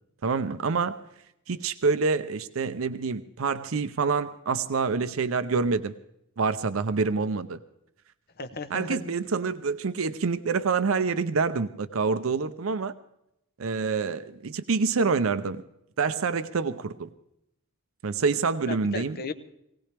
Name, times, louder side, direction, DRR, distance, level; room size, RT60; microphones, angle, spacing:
voice 1, 0.2-1.0 1.5-5.9 6.4-7.6 8.7-12.9 13.6-15.6 16.0-17.1 18.0-19.2, right 4 dB, 75° right, 12 dB, 0.6 m, -27 dB
voice 2, 8.4-9.1 18.7-19.3, left 3 dB, 50° left, 10 dB, 0.9 m, -35 dB
19.5 x 18.0 x 3.4 m, 0.80 s
head